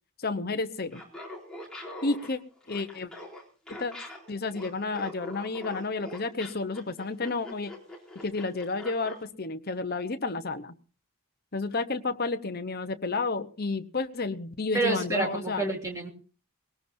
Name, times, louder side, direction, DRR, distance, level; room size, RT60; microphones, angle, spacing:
voice 1, 0.2-1.0 2.0-2.4 2.7-3.1 3.7-3.9 4.3-7.7 8.2-10.7 11.5-15.6, left 3 dB, 45° left, 8 dB, 0.9 m, -31 dB
Laughter, 0.8-9.2, left 1 dB, 5° left, 3.8 m, -43 dB
voice 2, 14.7-16.1, right 2 dB, 15° right, 0 dB, 3.1 m, -28 dB
21.0 x 18.0 x 2.7 m, 0.38 s
head